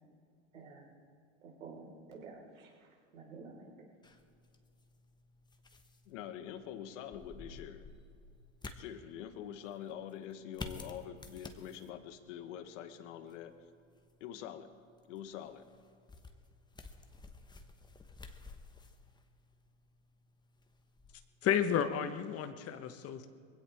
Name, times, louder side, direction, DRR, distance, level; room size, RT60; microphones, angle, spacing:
voice 1, 0.5-0.9 1.4-3.7, right 4 dB, 85° right, -2 dB, 4.8 m, -51 dB
sound 1, 4.0-22.1, left 3 dB, 10° left, 1.1 m, -53 dB
voice 2, 6.0-7.9 8.7-13.5 14.2-15.7, left 9 dB, 65° left, 9 dB, 1.5 m, -45 dB
voice 3, 21.4-23.3, left 9 dB, 35° left, 9 dB, 1.3 m, -32 dB
21.5 x 16.5 x 3.6 m, 2.4 s
hypercardioid pair, 105°, 39 cm